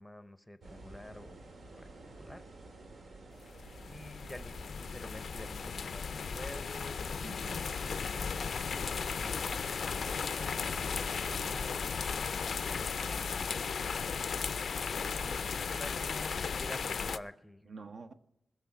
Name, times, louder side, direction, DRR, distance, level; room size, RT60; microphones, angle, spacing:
voice 1, 0.0-1.4 1.7-2.4 3.8-4.5 4.8-7.5 15.7-17.7, left 1 dB, 5° left, 0.7 m, -50 dB
sound 1, 0.6-11.8, right 2 dB, 85° right, 2.0 m, -51 dB
sound 2, 3.4-17.2, left 6 dB, 70° left, 0.4 m, -36 dB
voice 2, 7.2-7.7 12.7-13.6 17.7-18.1, right 4 dB, 60° right, 0.9 m, -49 dB
20.0 x 7.0 x 6.0 m
wide cardioid pair, 130°, 0 cm